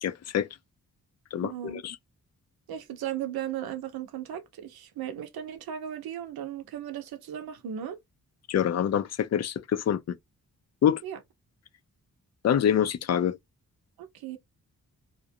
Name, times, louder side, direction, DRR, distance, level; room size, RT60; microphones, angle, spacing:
voice 1, 0.0-0.5 1.3-2.0 8.5-10.2 10.8-11.0 12.4-13.4, left 9 dB, 45° left, 0.5 m, -26 dB
voice 2, 1.4-1.8 2.7-8.0 11.0-11.2 14.0-14.4, right 10 dB, 90° right, 0.7 m, -36 dB
2.5 x 2.1 x 2.7 m
cardioid pair, 60°, 36 cm